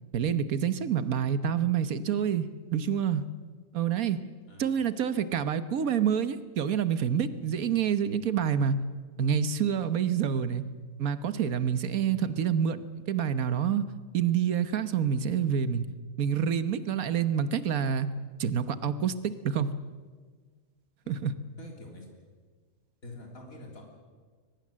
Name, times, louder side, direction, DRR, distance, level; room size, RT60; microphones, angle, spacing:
voice 1, 0.1-3.3 3.7-4.2 4.6-8.7 9.2-10.6 11.0-13.9 14.1-15.8 16.2-18.1 18.4-19.7 21.1-21.3, right 8 dB, 75° right, 13 dB, 1.5 m, -27 dB
voice 2, 4.5-4.8 21.0-21.2 21.6-22.1 23.0-23.9, left 2 dB, 70° left, 1 dB, 3.8 m, -46 dB
22.5 x 21.0 x 7.5 m, 1.5 s
omnidirectional pair, 1.5 m